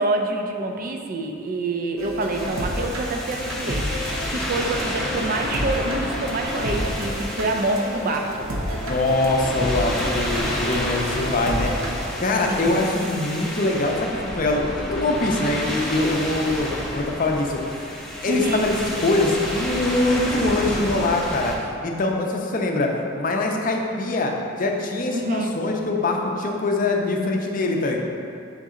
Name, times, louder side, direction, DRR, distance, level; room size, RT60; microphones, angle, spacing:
voice 1, 0.0-8.5 12.5-12.7 18.3-18.6 25.1-25.6, right 2 dB, 40° right, 3 dB, 0.5 m, -26 dB
sound 1, 2.0-12.1, equal, 80° right, 0.7 m, -31 dB
sound 2, 2.3-21.6, left 1 dB, ahead, 0.7 m, -30 dB
voice 2, 8.8-17.9 18.2-21.5 21.8-28.0, left 2 dB, 40° left, 1 dB, 0.5 m, -23 dB
6.5 x 4.0 x 3.7 m, 2.5 s
head